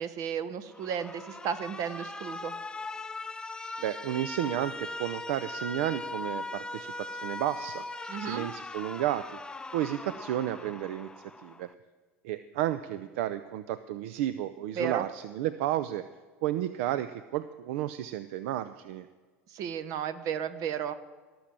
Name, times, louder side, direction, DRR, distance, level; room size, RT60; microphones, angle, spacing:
voice 1, 0.0-2.5 8.1-8.5 14.7-15.0 19.5-20.9, right 8 dB, 55° right, 14 dB, 1.1 m, -33 dB
Alarm, 0.7-11.7, left 2 dB, 10° left, 0.6 m, -40 dB
voice 2, 3.8-7.8 8.2-9.4 9.7-11.1 11.4-11.7 12.2-16.0 16.4-19.1, right 12 dB, 70° right, 13 dB, 0.5 m, -32 dB
17.5 x 7.1 x 7.5 m, 1.4 s
hypercardioid pair, 90°, 7 cm